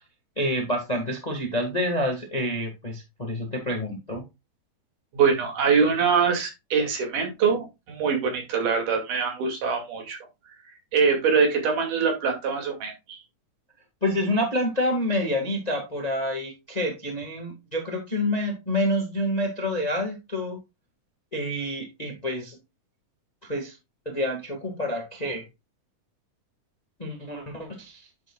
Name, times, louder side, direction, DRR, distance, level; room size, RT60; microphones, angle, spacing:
voice 1, 0.4-4.2 14.0-20.6 21.3-22.6 23.4-23.8 24.0-25.4 27.0-28.0, left 1 dB, 20° left, 2 dB, 1.2 m, -28 dB
voice 2, 5.1-10.2 10.9-13.2, right 5 dB, 75° right, 2 dB, 3.9 m, -23 dB
9.6 x 7.4 x 2.3 m, 0.23 s
omnidirectional pair, 3.7 m